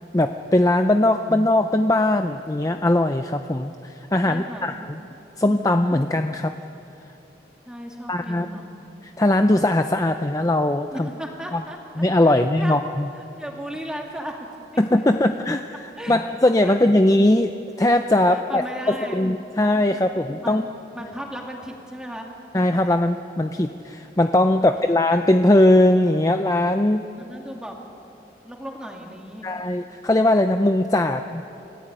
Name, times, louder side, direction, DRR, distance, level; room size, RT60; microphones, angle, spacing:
voice 1, 0.1-5.0 5.4-6.5 8.1-8.5 9.2-11.1 11.5-11.6 12.0-13.1 14.8-20.6 22.5-27.0 29.4-31.4, left 1 dB, 20° left, 7 dB, 0.5 m, -20 dB
voice 2, 4.2-5.0 7.7-8.7 10.9-12.8 13.2-14.5 14.7-15.1 16.0-16.2 16.6-17.0 18.3-19.3 20.4-22.3 27.1-27.8 28.0-28.2 28.4-29.5, equal, 5° right, 0 dB, 2.6 m, -36 dB
29.5 x 14.5 x 8.9 m, 2.9 s
head